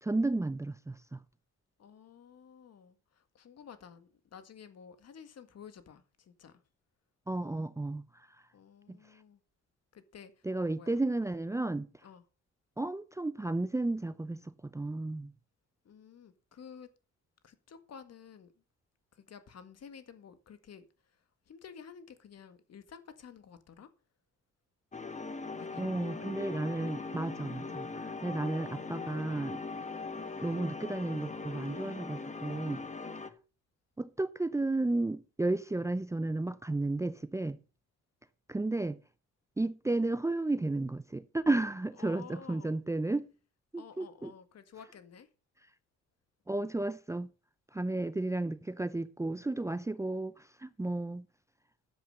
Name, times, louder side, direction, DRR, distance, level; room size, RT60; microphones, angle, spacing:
voice 1, 0.0-1.2 7.3-8.0 8.9-9.0 10.5-11.9 12.8-14.4 14.7-15.3 25.8-29.6 30.4-32.8 34.0-37.6 38.5-39.0 39.6-43.3 43.7-44.3 46.5-47.3 47.7-51.3, right 2 dB, 10° right, 0.5 m, -33 dB
voice 2, 1.8-6.6 7.4-7.7 8.5-9.4 9.9-11.0 12.0-12.2 15.9-16.9 17.4-18.5 19.1-23.9 25.6-25.8 42.0-42.8 43.8-45.3, left 7 dB, 55° left, 1.9 m, -52 dB
sound 1, 24.9-33.3, left 3 dB, 25° left, 1.4 m, -40 dB
10.5 x 7.8 x 6.5 m
cardioid pair, 90°, 30 cm